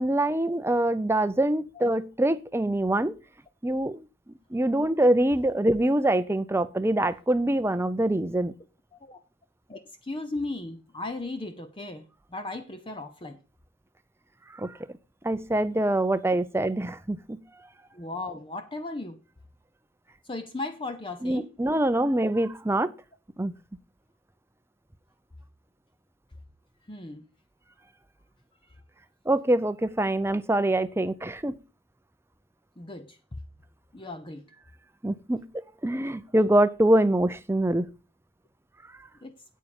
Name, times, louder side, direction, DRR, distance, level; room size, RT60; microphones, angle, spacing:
voice 1, 0.0-3.1 3.6-4.0 4.5-8.5 14.6-14.8 15.2-17.4 21.2-22.9 23.4-23.5 29.3-31.5 35.0-35.4 35.8-37.9, right 1 dB, 10° right, 0.6 m, -24 dB
voice 2, 9.7-12.0 12.3-13.4 17.9-19.2 20.2-21.5 26.9-27.2 32.8-33.2 33.9-34.5 39.2-39.3, left 2 dB, 25° left, 0.7 m, -36 dB
9.1 x 8.5 x 5.2 m
head